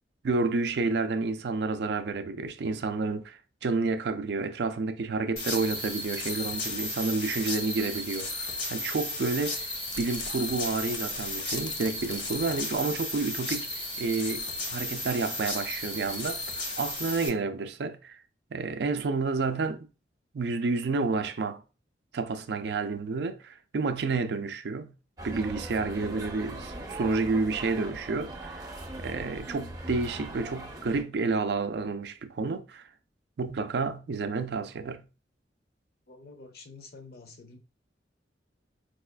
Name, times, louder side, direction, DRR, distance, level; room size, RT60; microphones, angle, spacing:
voice 1, 0.2-9.7 10.0-18.2 18.5-19.9 20.3-21.6 22.1-24.9 25.2-28.7 29.0-32.9 33.4-35.1, right 3 dB, 65° right, 0.4 m, -30 dB
sound 1, 5.4-17.3, left 2 dB, 75° left, 1.2 m, -34 dB
sound 2, 9.8-14.7 14.9-15.3 15.8-15.9, left 4 dB, 25° left, 0.4 m, -44 dB
sound 3, 25.2-31.0, right 1 dB, 20° right, 0.6 m, -40 dB
voice 2, 36.1-37.6, left 3 dB, 60° left, 0.7 m, -48 dB
4.7 x 2.4 x 2.2 m
head